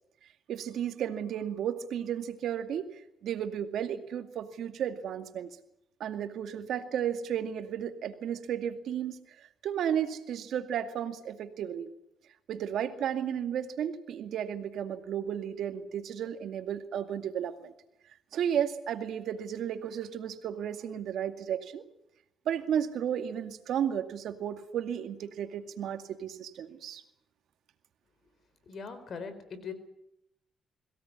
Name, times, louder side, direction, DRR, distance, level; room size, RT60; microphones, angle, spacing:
voice 1, 0.5-5.5 6.0-11.9 12.5-17.7 18.3-21.8 22.5-27.0, right 9 dB, 75° right, 8 dB, 2.2 m, -33 dB
voice 2, 28.7-29.7, left 5 dB, 55° left, 11 dB, 4.2 m, -40 dB
22.5 x 17.5 x 9.6 m, 0.80 s
cardioid pair, 90°, 0 cm